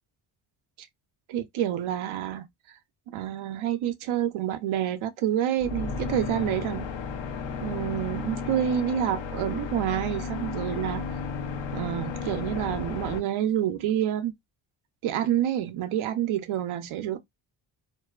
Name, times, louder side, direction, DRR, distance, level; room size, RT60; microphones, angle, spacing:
voice 1, 1.3-2.8 3.1-6.9 7.6-11.1 11.7-14.3 15.0-17.2, right 10 dB, 75° right, 0.6 m, -28 dB
sound 1, 5.6-13.2, left 5 dB, 65° left, 0.8 m, -33 dB
2.5 x 2.2 x 2.3 m
cardioid pair, 70°, 48 cm